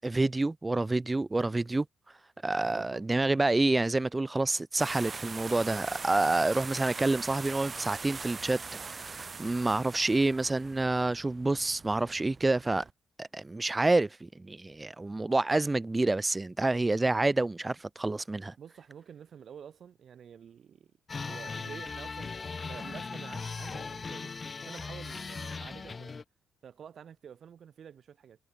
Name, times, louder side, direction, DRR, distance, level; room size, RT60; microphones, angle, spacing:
voice 1, 0.0-1.9 2.4-8.6 8.9-12.8 13.2-18.5, right 2 dB, 20° right, 0.5 m, -28 dB
voice 2, 2.6-3.0 18.6-20.9 21.2-24.3 24.7-26.2 26.6-28.4, right 8 dB, 55° right, 7.5 m, -49 dB
sound 1, 4.8-12.9, right 4 dB, 35° right, 4.6 m, -42 dB
sound 2, 21.1-26.2, left 4 dB, 35° left, 0.8 m, -39 dB
cardioid pair, 90°, 0 cm